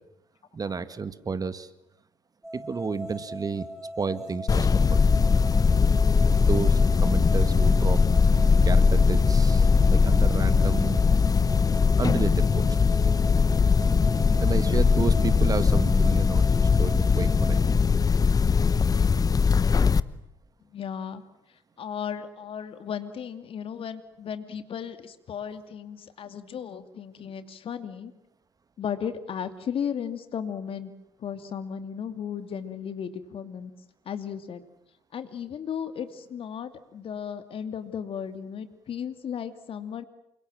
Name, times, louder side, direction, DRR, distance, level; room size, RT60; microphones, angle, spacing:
voice 1, 0.5-1.7 2.5-3.7 4.0-5.1 6.4-8.0 8.6-11.0 12.0-12.8 14.4-17.8, right 5 dB, 30° right, 13 dB, 1.9 m, -31 dB
sound 1, 2.4-17.6, equal, 5° right, 4.9 m, -40 dB
sound 2, 4.5-20.0, left 5 dB, 30° left, 1.0 m, -20 dB
voice 2, 20.7-21.2 21.8-28.1 28.8-30.9 31.2-33.7 34.1-34.6 35.1-40.0, left 8 dB, 45° left, 10 dB, 2.6 m, -35 dB
29.0 x 25.5 x 7.6 m, 0.81 s
figure-of-eight pair, 50°, 12 cm